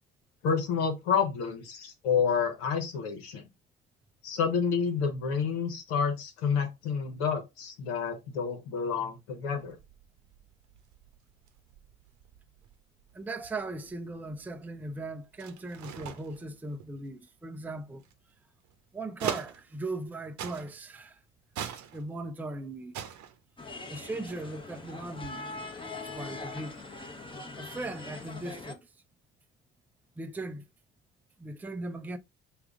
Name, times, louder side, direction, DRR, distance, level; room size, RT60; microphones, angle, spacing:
voice 1, 0.4-3.5 4.2-9.8, left 6 dB, 85° left, 1.0 m, -29 dB
sound 1, 9.6-20.1 20.4-21.0 21.4-22.5 22.8-24.7 25.0-26.3, right 9 dB, 60° right, 0.8 m, -43 dB
voice 2, 13.1-18.0 18.9-21.2 21.9-22.9 23.9-25.5 26.0-26.8 27.6-28.9 30.2-30.6 31.4-32.2, right 2 dB, 5° right, 0.4 m, -38 dB
sound 2, 23.6-28.7, left 3 dB, 15° left, 0.9 m, -42 dB
3.4 x 2.4 x 3.6 m
hypercardioid pair, 65°, 33 cm